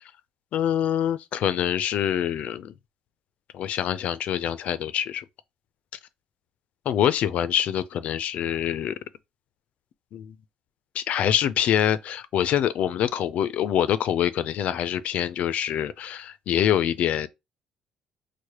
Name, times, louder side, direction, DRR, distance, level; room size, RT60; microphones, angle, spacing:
voice 1, 0.5-2.7 3.5-5.2 6.9-8.9 10.1-10.3 10.9-17.3, left 10 dB, 65° left, 0.4 m, -25 dB
4.7 x 2.1 x 2.9 m
cardioid pair, 130°, 3 cm